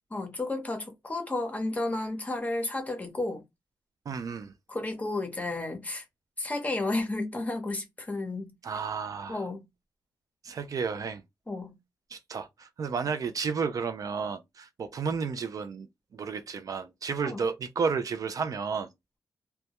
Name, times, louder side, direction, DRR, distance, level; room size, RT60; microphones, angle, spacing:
voice 1, 0.1-3.4 4.7-6.0 6.4-8.5 9.3-9.6 11.5-11.7 17.3-17.4, left 2 dB, 20° left, 0.8 m, -32 dB
voice 2, 4.1-4.5 8.6-9.5 10.4-11.2 12.1-18.9, right 5 dB, 55° right, 0.3 m, -32 dB
2.2 x 2.1 x 2.8 m
wide cardioid pair, 105°, 7 cm